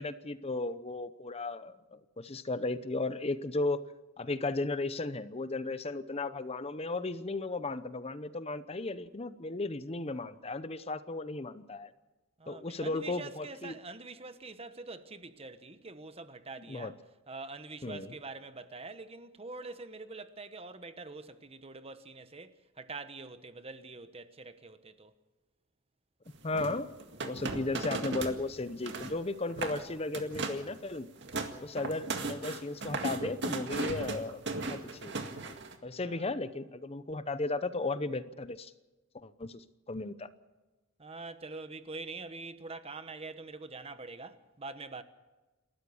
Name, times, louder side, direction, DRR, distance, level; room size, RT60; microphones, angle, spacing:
voice 1, 0.0-3.8 4.2-11.9 12.5-13.7 16.6-16.9 17.8-18.1 26.4-26.9 27.2-31.1 31.6-34.4 34.7-35.2 35.5-38.7 39.1-40.3, left 2 dB, 30° left, 0.7 m, -35 dB
voice 2, 12.4-17.0 17.3-25.1 31.4-31.8 36.0-36.3 41.0-45.0, right 3 dB, 30° right, 1.1 m, -45 dB
sound 1, 26.5-28.4 28.7-29.2 29.5-29.8 30.1-30.7 31.0-35.7, right 3 dB, 60° right, 2.0 m, -36 dB
29.0 x 13.0 x 7.1 m
head